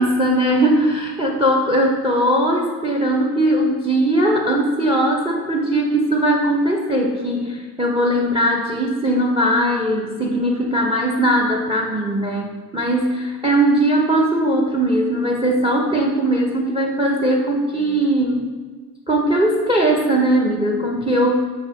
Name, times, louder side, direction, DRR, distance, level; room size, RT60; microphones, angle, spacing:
voice 1, 0.0-18.5 19.1-21.3, right 1 dB, 15° right, 1 dB, 0.6 m, -19 dB
8.0 x 2.8 x 4.2 m, 1.5 s
cardioid pair, 65°, 40 cm